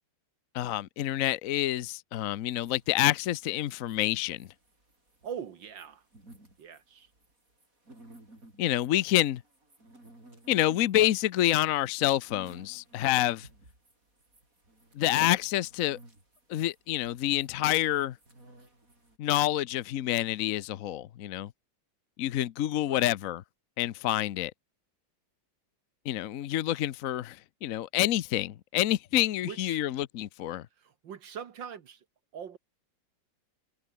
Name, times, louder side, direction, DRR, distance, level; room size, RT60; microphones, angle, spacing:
voice 1, 0.5-4.5 8.6-9.4 10.5-13.5 14.9-16.0 16.5-18.2 19.2-21.5 22.2-23.4 23.8-24.5 26.0-30.7, left 14 dB, 60° left, 0.9 m, -28 dB
sound 1, 2.5-19.2, right 1 dB, 45° right, 8.7 m, -57 dB
voice 2, 5.2-6.1 6.6-7.1 22.9-23.1 29.4-29.8 30.8-32.1 32.3-32.6, right 8 dB, 70° right, 2.1 m, -42 dB
omnidirectional pair, 2.1 m